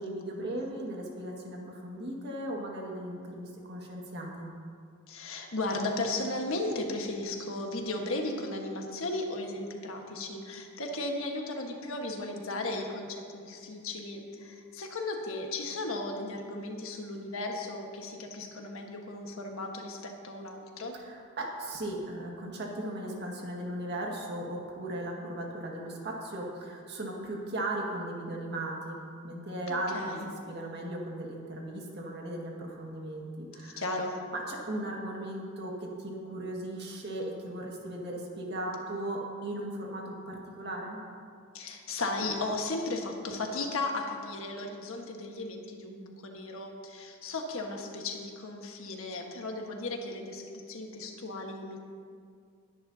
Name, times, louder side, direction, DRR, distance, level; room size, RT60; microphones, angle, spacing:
voice 1, 0.0-4.5 20.9-30.2 30.5-33.8 34.3-41.0, right 1 dB, 50° right, -1 dB, 1.9 m, -37 dB
voice 2, 5.1-20.9 29.7-30.3 33.6-34.2 41.5-51.8, left 2 dB, 70° left, 2 dB, 1.5 m, -35 dB
20.5 x 10.0 x 2.8 m, 2.2 s
head